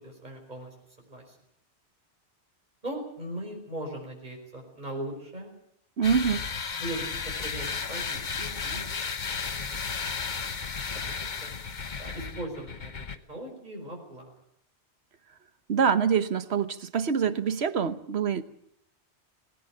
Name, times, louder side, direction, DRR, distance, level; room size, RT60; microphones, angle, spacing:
voice 1, 0.0-0.7 1.0-1.4 2.8-5.5 6.2-6.4 6.8-7.1 7.4-8.8 9.3-9.7 10.9-11.1 11.4-11.5 12.0-14.3, right 1 dB, 40° right, 0 dB, 5.3 m, -39 dB
sound 1, 6.0-13.2, left 5 dB, 45° left, 1.1 m, -34 dB
voice 2, 6.0-6.4 15.7-18.4, right 6 dB, 65° right, 13 dB, 1.4 m, -25 dB
19.5 x 18.5 x 8.8 m, 0.70 s
omnidirectional pair, 1.2 m